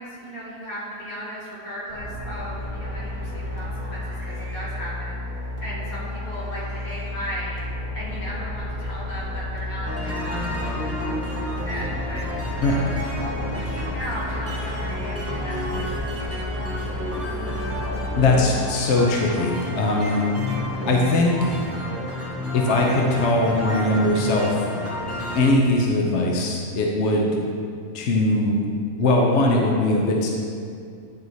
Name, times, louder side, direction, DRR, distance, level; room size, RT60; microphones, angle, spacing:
voice 1, 0.0-12.8 13.3-16.2, equal, 75° left, -7 dB, 2.4 m, -36 dB
sound 1, 1.9-18.5, left 1 dB, 35° left, 1.3 m, -32 dB
sound 2, 9.9-25.5, left 1 dB, 15° right, 0.7 m, -31 dB
voice 2, 18.1-20.3 20.9-21.6 22.5-24.5 25.3-27.3 27.9-28.6 29.0-30.3, left 2 dB, 55° left, -1 dB, 1.0 m, -20 dB
9.5 x 4.7 x 4.0 m, 2.3 s
omnidirectional pair, 1.5 m